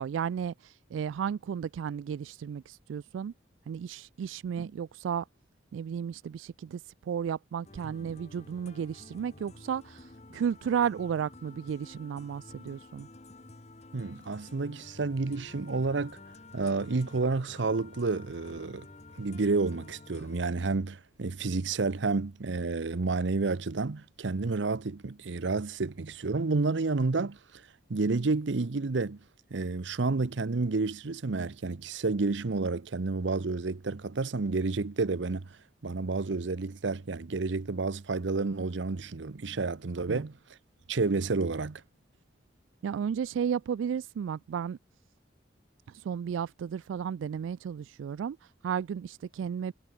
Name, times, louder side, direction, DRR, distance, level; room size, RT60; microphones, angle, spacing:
voice 1, 0.0-3.3 3.7-5.2 5.7-13.1 40.1-40.3 42.8-44.8 45.9-49.7, right 7 dB, 90° right, 0.3 m, -33 dB
sound 1, 7.6-20.5, left 2 dB, 35° left, 1.2 m, -51 dB
voice 2, 7.8-8.2 13.9-16.2 16.5-18.9 19.2-27.6 27.9-29.2 29.5-40.4 40.9-41.8, right 3 dB, 75° right, 0.7 m, -30 dB
head